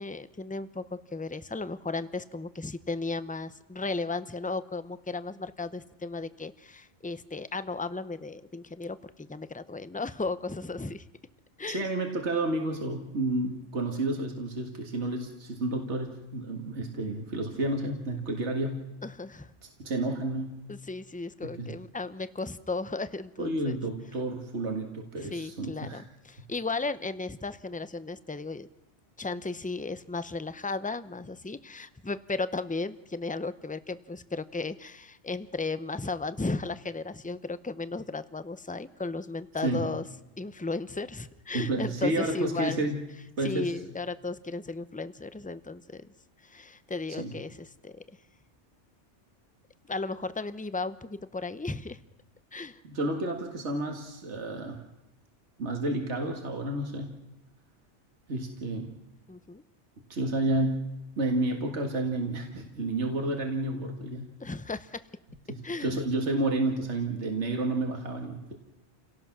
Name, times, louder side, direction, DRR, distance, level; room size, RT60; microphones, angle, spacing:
voice 1, 0.0-11.0 11.6-11.9 19.0-19.5 20.7-23.8 25.2-28.7 29.2-40.0 40.4-42.9 43.4-46.1 46.4-48.0 49.9-52.0 52.5-52.8 59.3-59.6 64.4-65.0 65.6-66.0, left 3 dB, 10° left, 13 dB, 0.4 m, -35 dB
voice 2, 11.7-18.8 19.6-20.6 21.4-21.7 23.4-26.0 39.6-39.9 41.5-43.0 43.4-43.7 47.2-47.4 52.8-54.8 55.6-57.1 58.3-58.9 60.1-60.8 61.2-64.3 65.5-68.5, right 2 dB, 70° right, 3 dB, 2.2 m, -30 dB
29.0 x 17.5 x 6.1 m, 1.0 s
omnidirectional pair, 1.2 m